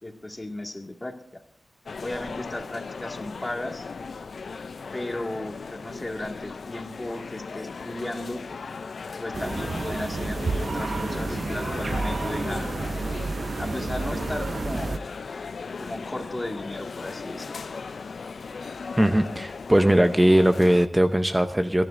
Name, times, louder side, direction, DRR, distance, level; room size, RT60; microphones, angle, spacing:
voice 1, 0.0-1.4 2.0-3.9 4.9-8.4 9.2-12.7 13.6-15.0 15.8-17.5, left 1 dB, 25° left, 2 dB, 2.1 m, -35 dB
sound 1, 1.9-20.9, left 4 dB, 80° left, 0.5 m, -37 dB
sound 2, 9.3-15.0, right 3 dB, 60° right, 0.5 m, -30 dB
voice 2, 19.0-21.9, right 1 dB, 15° right, 7 dB, 0.7 m, -20 dB
29.0 x 11.0 x 2.6 m, 0.71 s
wide cardioid pair, 60°, 0 cm